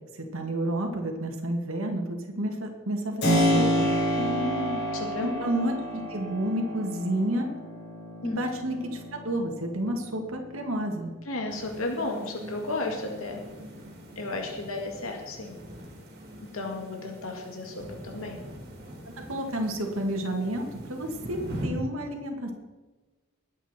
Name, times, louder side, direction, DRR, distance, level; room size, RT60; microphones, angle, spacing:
voice 1, 0.1-3.9 5.2-7.5 8.2-11.2 19.0-22.5, right 1 dB, 75° right, 2 dB, 2.1 m, -30 dB
Keyboard (musical), 3.2-11.8, equal, 60° left, 5.0 m, -29 dB
voice 2, 4.2-5.5 8.2-8.4 11.3-13.4 14.2-15.5 16.5-18.4, left 2 dB, 85° left, 2 dB, 2.1 m, -33 dB
sound 1, 11.5-21.7, right 1 dB, 50° right, 3.3 m, -42 dB
21.0 x 9.0 x 4.5 m, 1.2 s
head